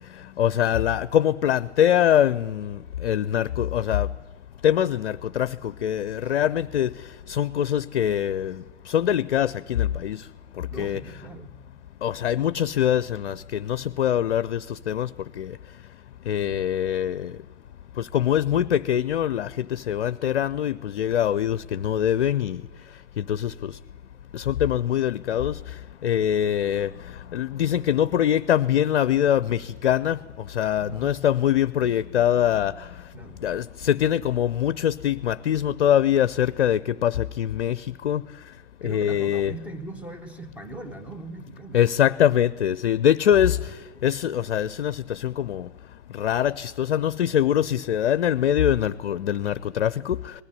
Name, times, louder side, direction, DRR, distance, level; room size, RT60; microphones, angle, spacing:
voice 1, 0.4-4.1 4.6-5.5 5.8-6.9 7.3-8.5 8.9-10.2 10.8-11.0 12.0-14.6 14.9-15.1 15.4-15.5 16.3-17.3 18.0-22.6 23.3-23.7 24.3-25.6 26.0-26.9 27.3-30.2 30.6-32.7 33.4-37.8 38.0-38.2 38.8-39.5 41.7-43.6 44.0-45.7 46.2-50.2, left 10 dB, 60° left, 17 dB, 0.6 m, -23 dB
voice 2, 10.7-11.5 30.8-31.1 33.1-33.5 38.8-41.8 43.7-43.8, right 2 dB, 5° right, 7 dB, 1.3 m, -39 dB
19.5 x 14.5 x 9.8 m, 1.2 s
figure-of-eight pair, 120°, 34 cm